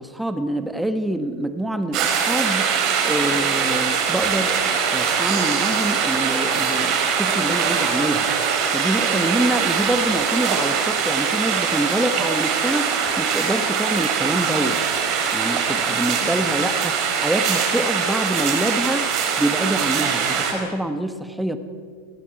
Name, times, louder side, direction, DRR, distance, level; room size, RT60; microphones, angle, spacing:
voice 1, 0.0-2.7 3.0-8.3 8.7-14.8 15.3-21.6, right 1 dB, 5° right, 10 dB, 1.3 m, -26 dB
sound 1, 1.9-20.5, right 6 dB, 40° right, 4.6 m, -22 dB
29.5 x 21.5 x 4.8 m, 2.1 s
figure-of-eight pair, 90°, 0 cm